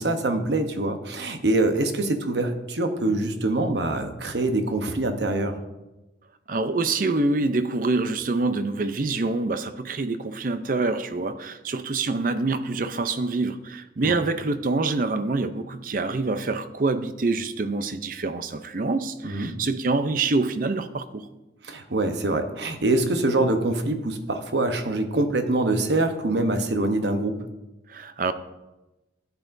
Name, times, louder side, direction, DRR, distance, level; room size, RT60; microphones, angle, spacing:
voice 1, 0.0-5.6 14.0-14.2 19.2-19.6 21.6-27.4, right 2 dB, 70° right, 7 dB, 0.9 m, -24 dB
voice 2, 6.5-21.2 27.9-28.3, right 3 dB, 50° right, 11 dB, 0.5 m, -26 dB
13.0 x 8.2 x 2.6 m, 1.0 s
head